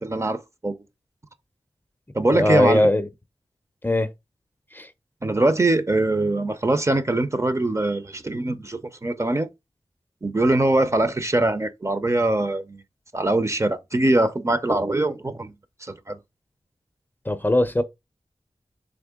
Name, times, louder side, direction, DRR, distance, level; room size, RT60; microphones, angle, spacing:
voice 1, 0.0-0.8 2.1-2.9 5.2-9.5 10.2-12.8 13.1-15.5 15.8-16.2, right 2 dB, 30° right, 0.5 m, -22 dB
voice 2, 2.3-3.1 3.8-4.1 4.7-4.9 17.3-17.8, left 1 dB, 20° left, 0.5 m, -20 dB
3.5 x 3.3 x 3.6 m
wide cardioid pair, 60°, 11 cm